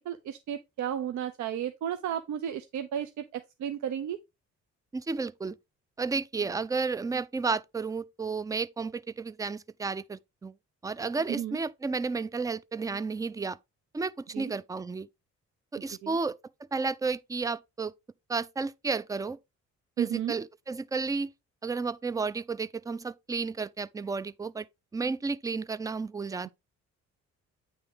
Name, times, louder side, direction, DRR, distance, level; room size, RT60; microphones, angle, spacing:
voice 1, 0.0-4.2 11.3-11.6 14.3-14.5 16.0-16.1 20.0-20.3, right 10 dB, 70° right, 0.7 m, -33 dB
voice 2, 4.9-5.6 6.0-10.5 10.8-13.6 13.9-15.1 15.7-16.4 16.7-17.9 18.3-19.4 20.0-21.3 21.6-24.7 24.9-26.5, right 4 dB, 10° right, 0.3 m, -32 dB
8.8 x 3.5 x 3.6 m
cardioid pair, 90°, 30 cm